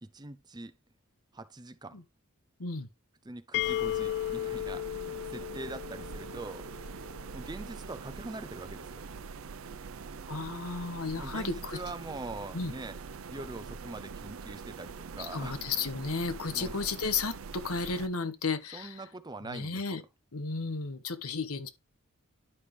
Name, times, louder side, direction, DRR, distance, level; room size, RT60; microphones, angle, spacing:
voice 1, 0.0-0.8 1.3-2.0 3.2-6.7 7.3-9.1 11.1-13.0 13.3-15.6 16.5-16.7 18.7-20.0, right 2 dB, 20° right, 0.6 m, -43 dB
sound 1, 3.5-7.3, left 14 dB, 50° left, 0.3 m, -35 dB
sound 2, 3.6-18.1, right 5 dB, 70° right, 0.6 m, -44 dB
voice 2, 10.3-11.8 12.5-12.7 15.3-18.9 19.5-20.0 20.3-21.7, left 4 dB, 85° left, 1.2 m, -33 dB
11.5 x 5.1 x 3.3 m
head